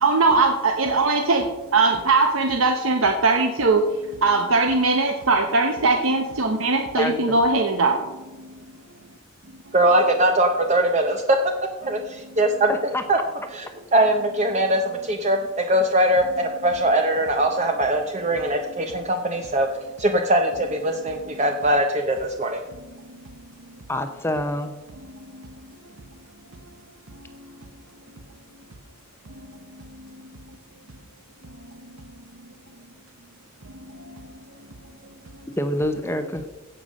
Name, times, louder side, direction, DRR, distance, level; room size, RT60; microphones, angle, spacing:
voice 1, 0.0-1.4 1.7-3.8 4.2-8.0, right 3 dB, 80° right, 4 dB, 1.1 m, -20 dB
voice 2, 9.7-11.4 11.8-12.7 13.1-13.2 13.5-19.7 20.0-22.6, right 1 dB, 35° right, 4 dB, 0.8 m, -21 dB
voice 3, 12.7-13.0 23.9-24.7 35.6-36.4, left 1 dB, 10° left, 8 dB, 0.7 m, -26 dB
16.5 x 5.6 x 6.4 m, 1.1 s
head